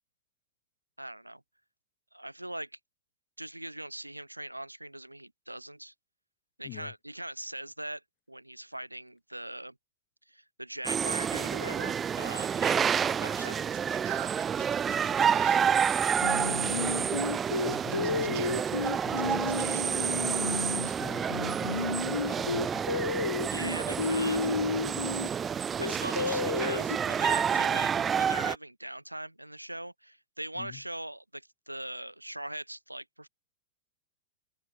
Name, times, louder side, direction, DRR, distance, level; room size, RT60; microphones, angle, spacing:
voice 1, 1.0-1.4 2.1-2.7 3.4-5.9 6.6-9.7 10.3-13.7 23.5-24.6 25.8-33.3, right 1 dB, 90° right, 1.1 m, -41 dB
sound 1, 10.8-28.5, right 7 dB, 20° right, 0.7 m, -29 dB
sound 2, 13.4-15.6 15.8-16.0 17.7-20.1, right 23 dB, 50° right, 1.2 m, -44 dB
Singing, 16.2-20.9 21.3-25.3 25.8-27.0, left 4 dB, 80° left, 0.5 m, -32 dB
voice 2, 16.3-17.3 17.6-21.7 22.0-23.0 30.5-30.8, left 27 dB, 40° left, 2.9 m, -45 dB
open air
figure-of-eight pair, 95°, 0 cm